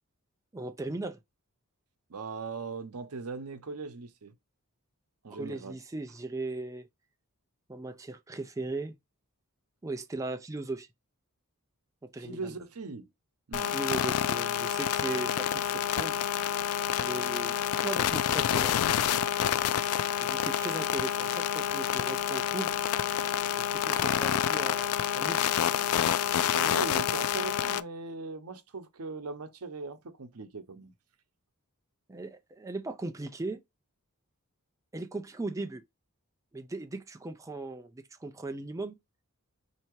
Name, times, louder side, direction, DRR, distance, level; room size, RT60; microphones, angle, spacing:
voice 1, 0.5-1.2 5.3-6.9 7.7-8.9 9.8-10.9 12.0-12.5 13.6-16.2 17.0-18.8 20.2-22.8 23.6-25.7 32.1-33.6 34.9-35.8 36.5-39.0, right 2 dB, 15° right, 0.4 m, -38 dB
voice 2, 2.1-4.3 5.2-5.7 12.2-13.1 13.5-13.8 26.5-30.9, right 4 dB, 90° right, 0.7 m, -39 dB
sound 1, 13.5-27.8, left 10 dB, 80° left, 0.3 m, -28 dB
4.5 x 2.8 x 2.9 m
head